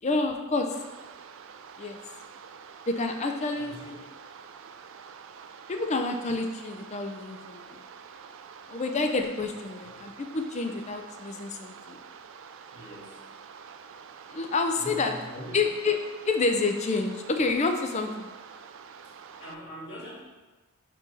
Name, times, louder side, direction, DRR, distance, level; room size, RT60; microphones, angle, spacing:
voice 1, 0.0-0.7 1.8-2.0 2.9-3.8 5.7-7.8 8.7-12.0 14.3-15.1 15.5-16.0 16.3-18.3, left 3 dB, 30° left, 5 dB, 0.5 m, -28 dB
sound 1, 0.7-19.5, right 6 dB, 60° right, 0.3 m, -47 dB
voice 2, 12.7-13.2 14.7-15.6 19.4-20.1, left 1 dB, 50° left, -7 dB, 2.1 m, -42 dB
4.6 x 4.5 x 5.3 m, 1.2 s
head